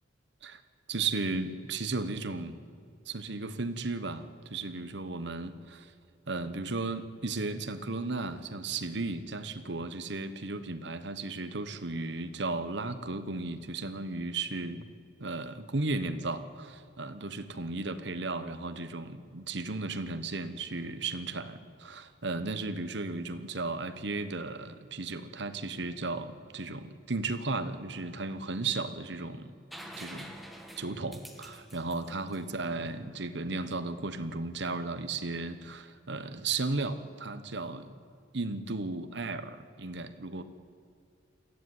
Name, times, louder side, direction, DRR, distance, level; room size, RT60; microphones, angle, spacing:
voice 1, 0.9-2.6 3.1-5.9 6.3-14.9 15.2-29.5 30.0-30.4 30.8-38.0 38.3-40.4, right 3 dB, 65° right, 11 dB, 1.2 m, -35 dB
sound 1, 29.7-33.4 35.3-35.4, equal, ahead, 1.6 m, -47 dB
22.0 x 15.0 x 9.6 m, 2.4 s
head